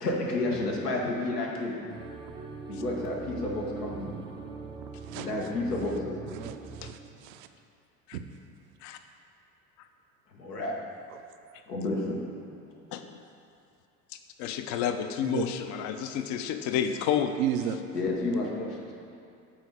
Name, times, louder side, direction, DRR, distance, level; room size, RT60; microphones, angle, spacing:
voice 1, 0.0-1.7 2.7-4.1 5.1-6.1 10.3-10.7 11.7-12.2 17.9-19.0, left 2 dB, 85° left, -2 dB, 1.1 m, -30 dB
sound 1, 1.9-6.9, right 5 dB, 10° right, 0.4 m, -41 dB
voice 2, 6.3-7.5 8.1-8.3 15.2-15.5 17.4-17.8, right 10 dB, 65° right, 8 dB, 0.5 m, -33 dB
voice 3, 14.4-17.3, left 9 dB, 40° left, 8 dB, 0.5 m, -30 dB
6.3 x 4.1 x 4.8 m, 2.4 s
figure-of-eight pair, 70°, 46 cm